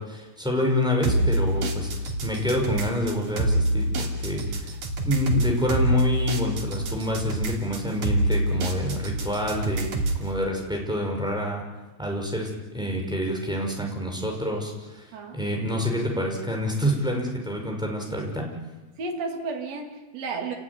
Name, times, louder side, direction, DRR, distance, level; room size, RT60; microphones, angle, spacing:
voice 1, 0.0-4.7 5.0-11.6 12.0-15.1 15.3-18.5, left 1 dB, ahead, 0 dB, 5.5 m, -27 dB
sound 1, 1.0-10.3, right 1 dB, 90° right, 4.3 m, -26 dB
voice 2, 19.0-20.6, right 3 dB, 60° right, 2 dB, 3.6 m, -32 dB
28.5 x 18.0 x 9.9 m, 1.2 s
omnidirectional pair, 3.4 m